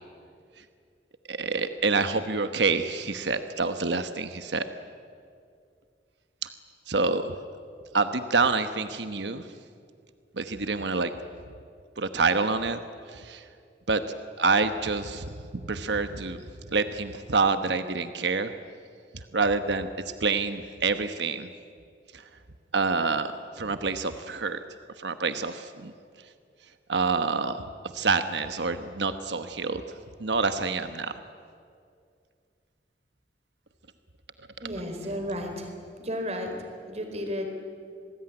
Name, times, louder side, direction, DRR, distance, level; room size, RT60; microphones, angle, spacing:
voice 1, 1.3-4.6 6.4-6.5 6.9-7.3 7.9-9.5 10.4-11.1 12.0-12.8 13.1-13.4 13.9-14.0 14.4-18.5 19.1-19.9 20.2-21.5 22.1-22.2 22.7-24.6 25.0-25.9 26.9-27.7 27.9-29.8 30.2-31.1, right 4 dB, 75° right, 9 dB, 1.1 m, -27 dB
voice 2, 34.6-35.7 36.0-36.5 36.9-37.5, equal, 40° right, 4 dB, 4.6 m, -32 dB
27.0 x 20.0 x 9.9 m, 2.2 s
head